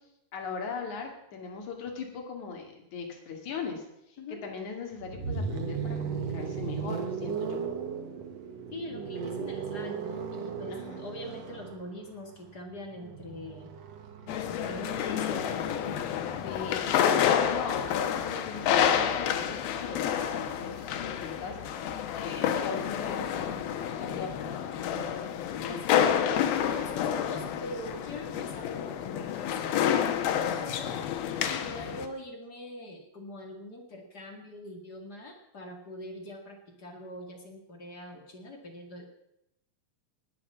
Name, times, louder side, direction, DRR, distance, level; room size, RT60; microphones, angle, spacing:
voice 1, 0.3-7.6 10.7-11.0 16.4-21.9 22.2-24.3 24.7-25.1, left 5 dB, 55° left, 2 dB, 3.6 m, -39 dB
sound 1, 5.0-16.9 18.2-21.8, right 6 dB, 55° right, 2.2 m, -38 dB
voice 2, 8.7-13.7 14.5-16.0 25.6-31.0 31.4-39.1, left 1 dB, 35° left, 3 dB, 2.1 m, -43 dB
sound 2, 14.3-32.1, left 9 dB, 90° left, 3.0 m, -29 dB
18.5 x 7.8 x 7.3 m, 0.82 s
omnidirectional pair, 4.2 m